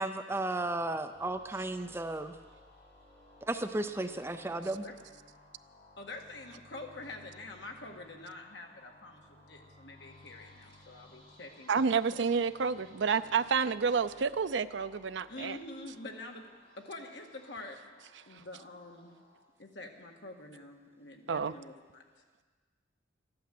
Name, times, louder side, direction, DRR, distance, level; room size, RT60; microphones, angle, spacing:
voice 1, 0.0-2.3 3.4-4.8, right 2 dB, 15° right, 8 dB, 0.5 m, -34 dB
sound 1, 1.1-19.4, left 1 dB, 20° left, 4.3 m, -59 dB
voice 2, 6.0-11.8 12.1-12.2 15.3-17.8 18.3-19.2 19.6-22.0, left 2 dB, 65° left, 2 dB, 1.7 m, -46 dB
voice 3, 11.7-15.6 21.3-21.5, right 5 dB, 70° right, 13 dB, 0.5 m, -29 dB
14.0 x 11.5 x 7.7 m, 1.4 s
head